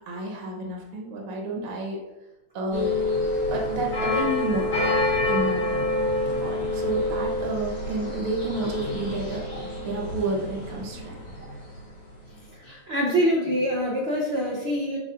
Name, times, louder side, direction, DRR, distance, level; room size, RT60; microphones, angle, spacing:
voice 1, 0.1-2.0 2.5-3.0 3.5-5.7 6.4-9.4 9.8-11.2, right 2 dB, 85° right, 0 dB, 1.9 m, -30 dB
sound 1, 2.7-11.9 12.2-12.4, left 2 dB, 70° left, 3.3 m, -27 dB
voice 2, 12.4-15.0, equal, 55° right, -3 dB, 0.7 m, -25 dB
6.7 x 5.9 x 2.5 m, 1.0 s
omnidirectional pair, 2.4 m